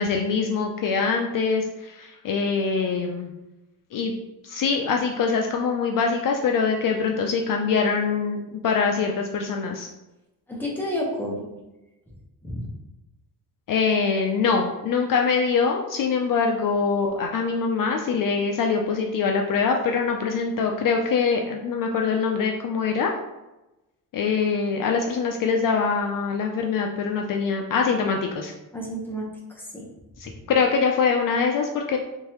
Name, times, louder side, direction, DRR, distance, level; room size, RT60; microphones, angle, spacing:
voice 1, 0.0-3.3 3.9-4.2 4.4-9.9 13.7-23.1 24.1-28.5 30.2-32.0, left 5 dB, 55° left, 2 dB, 0.5 m, -24 dB
voice 2, 10.5-11.4 12.4-12.7 28.7-29.3 29.5-29.8, equal, 5° left, -3 dB, 0.9 m, -30 dB
3.7 x 3.5 x 2.9 m, 1.0 s
cardioid pair, 135°, 39 cm